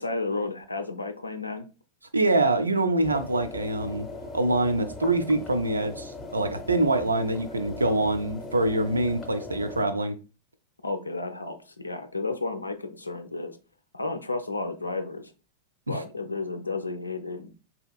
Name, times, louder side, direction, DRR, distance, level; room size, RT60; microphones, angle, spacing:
voice 1, 0.0-1.7 10.8-13.6 13.9-15.3 15.9-17.5, left 3 dB, 80° left, 0.4 m, -32 dB
voice 2, 2.1-4.1 4.3-10.2 15.9-16.0, right 2 dB, 80° right, 0.4 m, -25 dB
sound 1, 3.0-9.8, left 2 dB, 20° left, 0.7 m, -40 dB
4.0 x 2.8 x 2.2 m
figure-of-eight pair, 90°, 0 cm